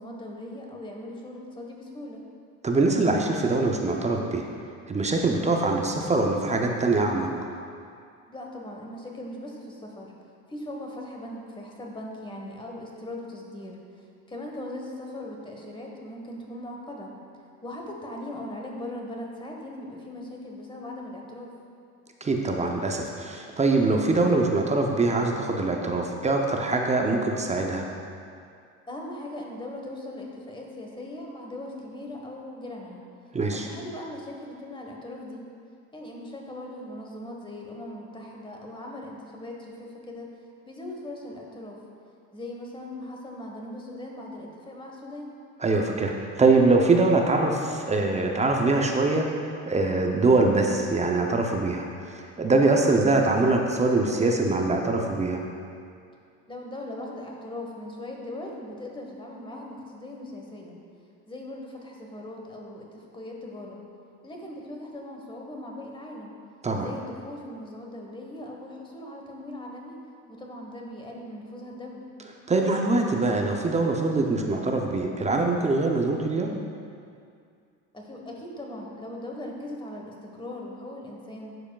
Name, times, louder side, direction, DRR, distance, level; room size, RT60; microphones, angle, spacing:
voice 1, 0.0-2.3 8.3-10.1 10.5-13.8 14.3-17.2 17.6-21.5 28.9-33.0 33.5-35.5 35.9-40.3 40.6-41.8 42.3-45.3 56.5-60.8 61.3-63.8 64.2-66.4 66.8-70.0 70.3-72.1 77.9-81.6, left 1 dB, 15° left, 0 dB, 1.2 m, -39 dB
voice 2, 2.6-4.4 4.9-7.5 22.2-27.9 33.3-33.7 45.6-49.3 49.7-55.4 66.6-66.9 72.5-76.5, right 3 dB, 20° right, 2 dB, 0.6 m, -23 dB
11.5 x 4.9 x 2.3 m, 2.3 s
supercardioid pair, 85°, 33 cm